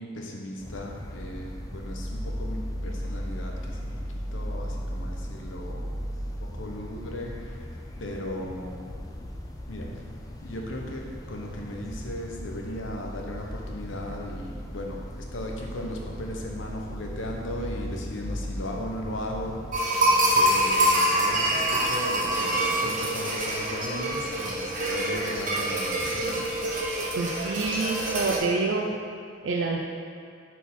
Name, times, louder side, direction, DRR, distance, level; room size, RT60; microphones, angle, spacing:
voice 1, 0.0-3.9 4.3-6.0 6.5-7.6 8.0-9.0 9.7-9.9 10.4-19.6 20.3-26.4, left 1 dB, 85° left, 0 dB, 0.8 m, -37 dB
sound 1, 0.6-19.7, equal, 20° left, 0.4 m, -37 dB
sound 2, 19.7-28.4, right 1 dB, 45° right, 1.0 m, -25 dB
voice 2, 27.2-28.9 29.4-29.8, right 3 dB, 75° right, -1 dB, 0.4 m, -27 dB
4.6 x 4.2 x 5.4 m, 2.4 s
head